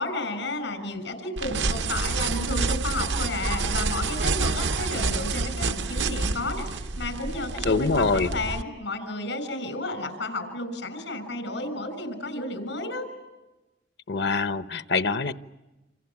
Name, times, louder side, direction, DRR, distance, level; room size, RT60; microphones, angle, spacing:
voice 1, 0.0-13.1, left 2 dB, 90° left, 10 dB, 6.3 m, -32 dB
sound 1, 1.4-8.6, right 3 dB, 75° right, 0.8 m, -28 dB
voice 2, 7.6-8.3 14.1-15.3, left 4 dB, 65° left, 11 dB, 0.9 m, -24 dB
28.5 x 27.5 x 7.3 m, 1.1 s
head